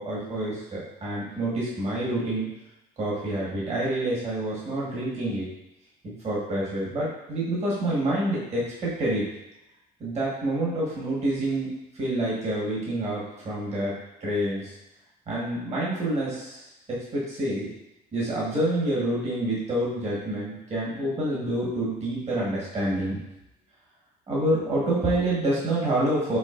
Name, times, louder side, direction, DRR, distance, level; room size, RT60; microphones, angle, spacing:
voice 1, 0.0-2.5 3.0-5.5 6.0-9.3 10.0-13.9 14.2-14.8 15.3-17.7 18.1-23.2 24.3-26.4, right 1 dB, 40° right, -6 dB, 1.5 m, -27 dB
5.1 x 4.1 x 2.6 m, 0.90 s
cardioid pair, 110°, 17 cm